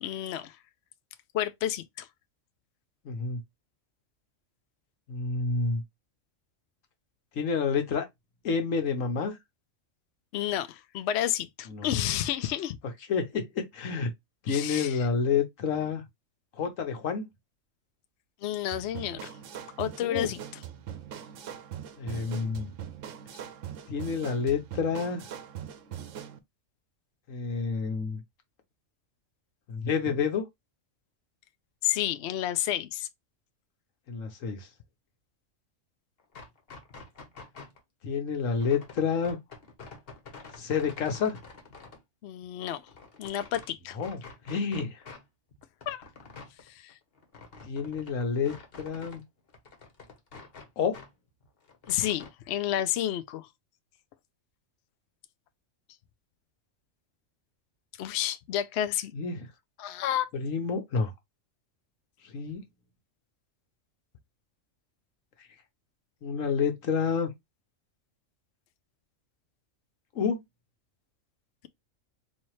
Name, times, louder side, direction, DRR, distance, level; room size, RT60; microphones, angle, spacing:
voice 1, 0.0-0.6 1.3-2.1 10.3-12.8 14.5-15.1 18.4-19.3 19.8-20.4 31.8-33.1 42.2-42.8 43.2-44.0 45.9-46.1 46.7-46.9 51.9-53.5 58.0-59.1 59.8-60.3, left 11 dB, 65° left, 0.7 m, -30 dB
voice 2, 3.0-3.4 5.1-5.8 7.3-8.1 8.4-9.4 11.7-11.9 13.1-14.1 14.4-16.0 16.6-17.3 20.0-20.3 22.0-22.7 23.9-25.2 27.3-28.2 29.7-30.4 34.1-34.7 38.0-39.4 40.6-41.4 44.0-44.2 44.5-45.0 47.6-49.2 50.8-51.0 59.1-59.5 60.3-61.1 62.3-62.6 66.2-67.3 70.1-70.4, left 5 dB, 90° left, 1.3 m, -29 dB
sound 1, 18.7-26.4, right 9 dB, 75° right, 1.0 m, -41 dB
sound 2, 36.2-37.8 38.5-42.0 42.4-43.7 44.0-45.2 45.5-49.2 49.5-51.1 51.4-52.3, left 4 dB, 50° left, 1.2 m, -48 dB
4.2 x 2.8 x 3.1 m
omnidirectional pair, 1.3 m